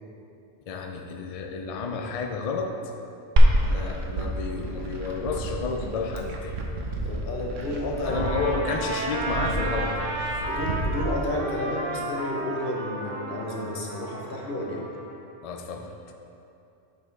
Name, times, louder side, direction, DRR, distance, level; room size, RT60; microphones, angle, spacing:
voice 1, 0.7-2.7 3.6-6.5 8.1-10.0 15.4-15.9, left 4 dB, 70° left, 3 dB, 0.3 m, -31 dB
Glass, 3.4-11.3, right 1 dB, 90° right, 1.1 m, -26 dB
voice 2, 7.0-8.4 10.4-14.8, left 1 dB, 50° left, -1 dB, 1.1 m, -31 dB
Trumpet, 8.0-15.1, right 2 dB, 50° right, 1.0 m, -33 dB
6.6 x 5.7 x 3.9 m, 2.7 s
omnidirectional pair, 1.3 m